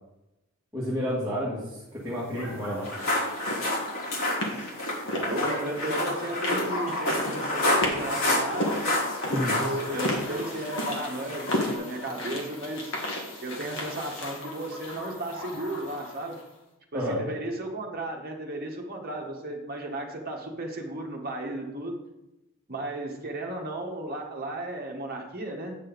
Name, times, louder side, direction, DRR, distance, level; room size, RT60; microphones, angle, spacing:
voice 1, 0.7-2.9 9.3-9.6 16.9-17.2, equal, 15° right, -8 dB, 1.7 m, -30 dB
sound 1, 2.3-16.4, left 1 dB, 55° left, 1.8 m, -34 dB
sound 2, 2.8-11.7, left 1 dB, 75° left, 3.4 m, -29 dB
voice 2, 5.0-8.9 9.6-13.0 13.4-16.4 16.9-22.0 22.7-25.8, right 1 dB, 45° right, 1 dB, 1.3 m, -34 dB
8.7 x 6.5 x 4.0 m, 0.96 s
head